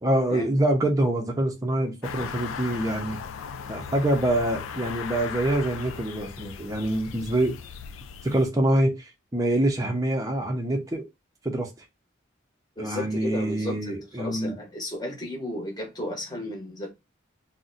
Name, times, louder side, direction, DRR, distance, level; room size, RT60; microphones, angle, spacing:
voice 1, 0.0-3.2 3.7-7.6 8.2-11.0 11.4-11.7 12.8-14.6, right 1 dB, 15° right, 0.5 m, -25 dB
sound 1, 2.0-8.5, left 6 dB, 80° left, 0.3 m, -37 dB
voice 2, 12.8-16.9, left 1 dB, 20° left, 0.9 m, -34 dB
2.6 x 2.1 x 3.8 m
head